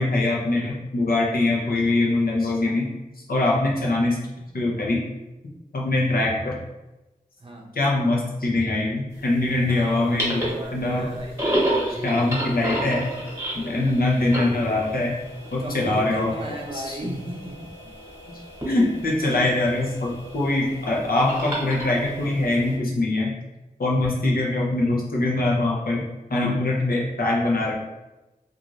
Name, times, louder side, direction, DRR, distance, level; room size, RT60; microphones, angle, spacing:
voice 1, 0.0-2.9 3.3-4.2 4.5-5.0 5.4-6.5 7.7-10.4 10.7-11.1 12.0-13.0 13.5-15.2 15.5-16.3 16.7-17.1 18.3-23.3 23.8-26.0 26.3-27.7, left 2 dB, 75° left, -3 dB, 0.6 m, -23 dB
sound 1, 9.2-22.8, right 1 dB, 20° right, 1.1 m, -32 dB
voice 2, 9.6-11.8 15.6-17.6, right 1 dB, 35° right, -1 dB, 0.6 m, -36 dB
2.5 x 2.4 x 3.0 m, 1.0 s
wide cardioid pair, 75°, 15 cm